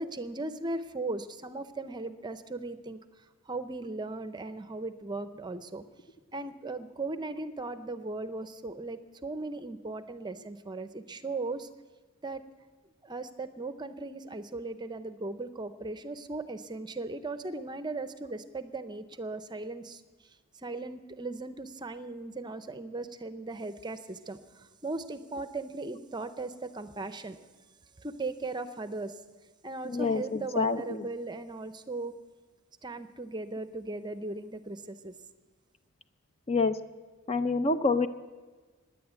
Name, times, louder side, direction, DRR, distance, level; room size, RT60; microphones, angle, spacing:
voice 1, 0.0-3.0 3.5-5.8 6.3-11.7 12.2-12.4 13.0-20.0 20.6-27.4 28.0-29.2 29.6-32.1 32.8-35.1, right 2 dB, 20° right, 11 dB, 0.6 m, -37 dB
voice 2, 29.8-31.1 36.5-36.8 37.3-38.1, left 4 dB, 30° left, 10 dB, 0.5 m, -27 dB
17.0 x 10.5 x 8.2 m, 1.4 s
head